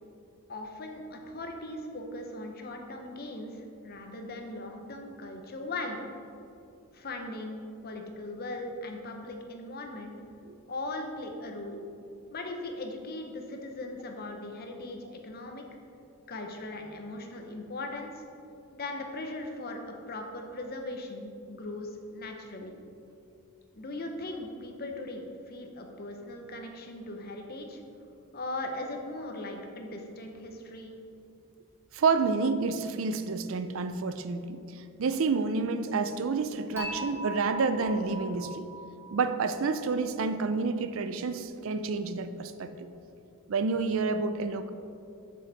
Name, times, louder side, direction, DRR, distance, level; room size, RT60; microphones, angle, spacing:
voice 1, 0.5-6.0 6.9-10.2 10.7-11.8 12.3-15.6 16.3-18.2 18.7-22.8 23.7-27.8 28.3-30.9, left 2 dB, 45° left, 3 dB, 0.8 m, -39 dB
voice 2, 31.9-34.6 35.0-38.7 39.1-42.9 43.5-44.7, right 4 dB, 65° right, 10 dB, 0.4 m, -29 dB
Dishes pots and pans / Chink clink, 36.8-39.9, equal, 10° left, 1.6 m, -41 dB
7.7 x 6.4 x 4.1 m, 2.6 s
head